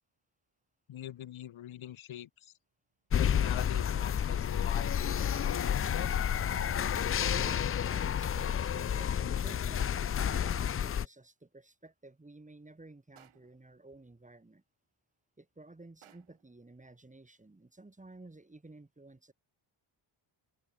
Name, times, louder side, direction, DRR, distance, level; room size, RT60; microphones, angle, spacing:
voice 1, 0.9-2.5 3.2-6.2, left 12 dB, 75° left, 1.7 m, -43 dB
sound 1, 3.1-11.0, left 9 dB, 30° left, 0.4 m, -30 dB
sound 2, 4.0-8.5, right 10 dB, 70° right, 2.9 m, -59 dB
voice 2, 7.2-14.6 15.4-19.3, right 2 dB, 15° right, 3.5 m, -53 dB
sound 3, 7.4-8.0 10.3-10.8 13.2-13.7 16.0-16.5, right 11 dB, 85° right, 4.8 m, -61 dB
cardioid pair, 105°, 48 cm